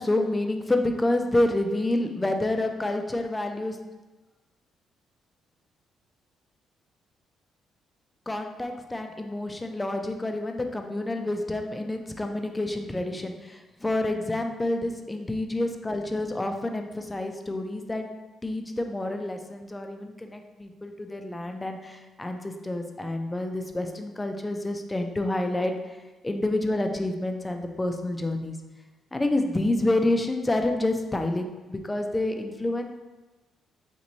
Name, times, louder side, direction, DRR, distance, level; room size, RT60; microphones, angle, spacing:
voice 1, 0.0-3.8 8.3-18.1 18.4-25.7 26.2-28.6 29.1-32.9, left 1 dB, 15° left, 5 dB, 0.4 m, -28 dB
3.0 x 2.5 x 4.0 m, 1.2 s
cardioid pair, 90°, 0 cm